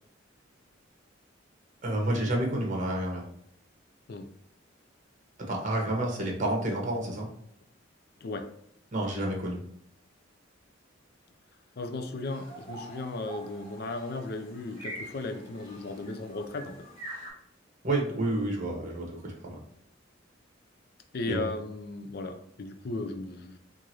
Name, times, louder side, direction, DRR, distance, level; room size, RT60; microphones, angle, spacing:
voice 1, 1.8-3.2 5.4-7.3 8.9-9.6 17.8-19.6 21.2-21.5, right 1 dB, 40° right, 0 dB, 1.1 m, -29 dB
voice 2, 11.8-16.9 21.1-23.6, left 2 dB, 55° left, 7 dB, 0.5 m, -36 dB
sound 1, 12.2-17.3, right 1 dB, 30° left, 1.5 m, -45 dB
4.6 x 2.6 x 2.9 m, 0.70 s
head